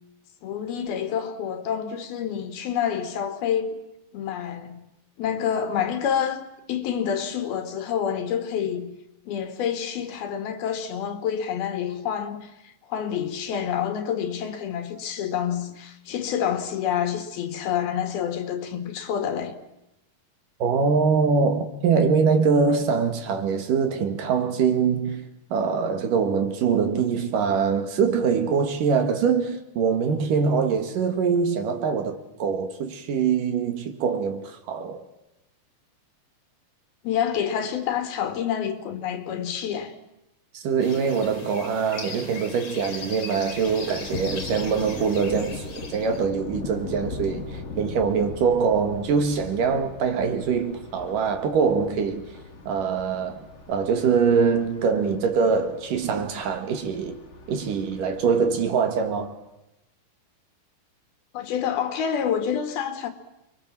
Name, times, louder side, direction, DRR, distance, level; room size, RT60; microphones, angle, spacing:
voice 1, 0.4-3.8 4.1-4.8 5.2-6.4 6.7-8.9 9.3-12.5 12.9-19.6 37.0-39.9 61.3-63.1, left 8 dB, 80° left, 3.9 m, -28 dB
voice 2, 20.6-25.2 25.5-35.0 40.5-47.4 47.8-52.3 52.7-57.2 57.5-59.3, right 5 dB, 65° right, 3.3 m, -23 dB
sound 1, 40.8-46.3, left 4 dB, 40° left, 3.4 m, -39 dB
Thunder, 43.4-59.3, left 3 dB, 60° left, 0.7 m, -40 dB
29.0 x 23.0 x 7.5 m
omnidirectional pair, 4.4 m